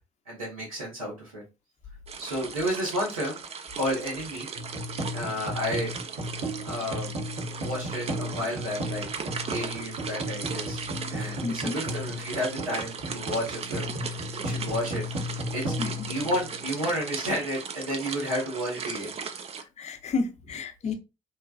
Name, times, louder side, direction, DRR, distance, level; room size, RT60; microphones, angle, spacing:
voice 1, 0.3-1.4 2.2-3.4 3.7-4.5 5.1-5.9 6.6-7.1 7.6-9.1 9.5-10.8 11.1-15.1 15.5-15.7 16.1-19.1, equal, 90° right, 1.1 m, -31 dB
sound 1, 2.1-19.6, right 6 dB, 35° right, 0.5 m, -37 dB
sound 2, 4.5-17.0, equal, 75° right, 1.1 m, -35 dB
voice 2, 11.4-11.8 15.8-16.1 19.6-20.9, left 4 dB, 40° left, 0.6 m, -31 dB
3.0 x 2.2 x 2.3 m
hypercardioid pair, 50°, 17 cm